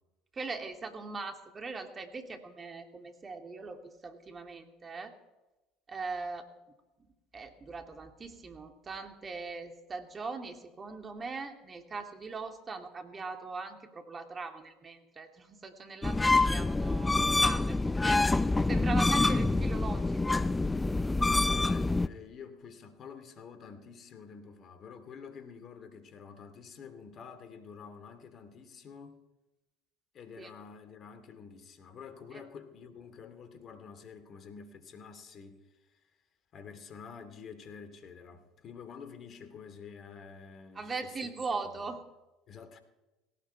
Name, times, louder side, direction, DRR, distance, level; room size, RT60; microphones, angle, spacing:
voice 1, 0.3-5.2 5.9-6.5 7.0-7.1 7.3-18.4 18.7-20.4 30.4-30.5 32.3-32.4 40.7-42.0, right 4 dB, 30° right, 2.6 m, -40 dB
sound 1, 16.0-22.1, left 2 dB, 15° left, 0.6 m, -26 dB
voice 2, 21.3-29.2 30.1-35.6 35.9-36.0 36.5-41.3 41.6-41.9 42.5-42.8, left 6 dB, 45° left, 2.6 m, -48 dB
18.5 x 17.0 x 4.6 m
hypercardioid pair, 70°, 0 cm